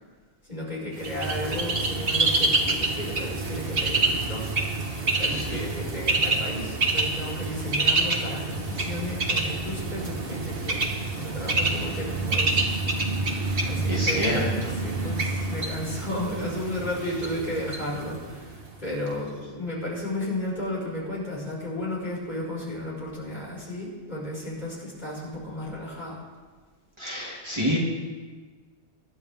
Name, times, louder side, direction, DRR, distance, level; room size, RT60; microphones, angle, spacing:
voice 1, 0.4-4.4 5.2-10.9 11.1-12.7 13.2-26.2, left 1 dB, 45° left, -6 dB, 5.6 m, -33 dB
Bird, 1.0-18.7, right 3 dB, 60° right, 1.7 m, -27 dB
voice 2, 5.3-5.6 13.4-14.7 27.0-27.8, equal, 25° right, -6 dB, 2.7 m, -29 dB
24.0 x 11.0 x 3.6 m, 1.4 s
omnidirectional pair, 1.1 m